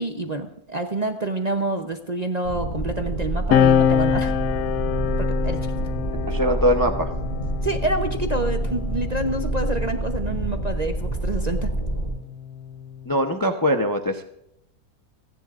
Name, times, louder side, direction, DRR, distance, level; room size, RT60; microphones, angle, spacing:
voice 1, 0.0-4.3 5.2-5.7 7.6-11.7, right 2 dB, 35° right, 5 dB, 0.8 m, -27 dB
sound 1, 2.4-12.1, right 2 dB, 40° left, 5.8 m, -27 dB
sound 2, 3.5-10.4 11.4-13.2, left 8 dB, 70° left, 1.1 m, -25 dB
voice 2, 6.2-7.1 13.1-14.2, equal, 20° left, 5 dB, 0.7 m, -22 dB
29.0 x 10.5 x 2.5 m, 0.78 s
omnidirectional pair, 1.6 m